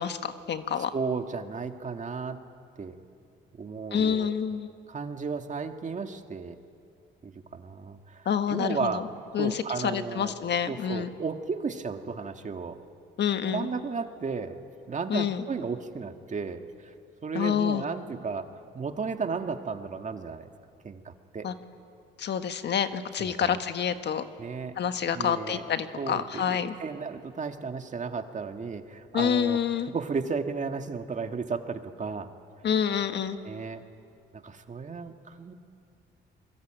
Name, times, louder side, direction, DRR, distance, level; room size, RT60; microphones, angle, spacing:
voice 1, 0.0-0.9 3.9-4.7 8.2-9.0 9.3-11.1 13.2-13.7 15.1-15.4 17.3-17.8 21.4-21.5 22.2-24.2 24.8-26.7 29.1-29.9 32.6-33.4, left 8 dB, 60° left, 9 dB, 1.5 m, -28 dB
voice 2, 0.9-2.4 2.8-3.0 3.6-4.3 4.9-6.6 7.2-9.0 9.4-10.4 10.7-12.8 13.4-14.6 14.9-16.9 17.2-20.5 20.8-21.5 23.2-23.6 24.4-24.7 25.1-25.6 26.0-32.3 33.4-33.8 34.3-35.5, right 5 dB, 40° right, 6 dB, 1.9 m, -34 dB
27.5 x 23.0 x 9.0 m, 2.4 s
cardioid pair, 90°, 20 cm